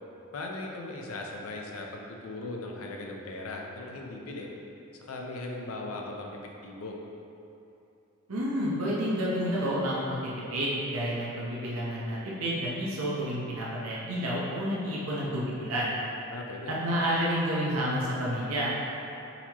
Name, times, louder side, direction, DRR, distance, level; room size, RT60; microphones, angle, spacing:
voice 1, 0.3-4.5 4.9-6.3 6.6-6.9 16.3-16.7, left 2 dB, 80° left, 0 dB, 0.6 m, -38 dB
voice 2, 8.3-15.9 16.7-18.7, equal, 90° right, -6 dB, 0.7 m, -30 dB
4.1 x 2.9 x 4.3 m, 2.8 s
head